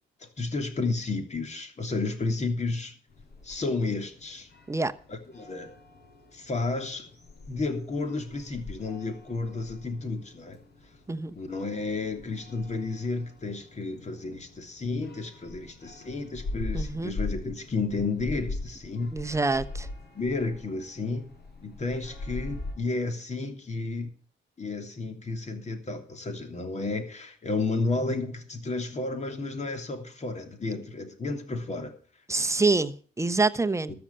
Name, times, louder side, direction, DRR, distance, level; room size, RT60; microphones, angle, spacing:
voice 1, 0.2-2.9 3.4-4.5 5.1-5.7 6.3-7.1 7.5-10.6 11.4-19.1 20.1-21.3 21.6-24.1 24.6-31.9 33.9-34.0, left 3 dB, 35° left, 3.1 m, -32 dB
sound 1, 3.1-22.7, left 2 dB, 55° left, 4.9 m, -41 dB
voice 2, 16.7-17.1 19.1-19.9 32.3-33.9, right 3 dB, 15° right, 1.0 m, -26 dB
13.5 x 7.0 x 8.6 m
cardioid pair, 90°, 20 cm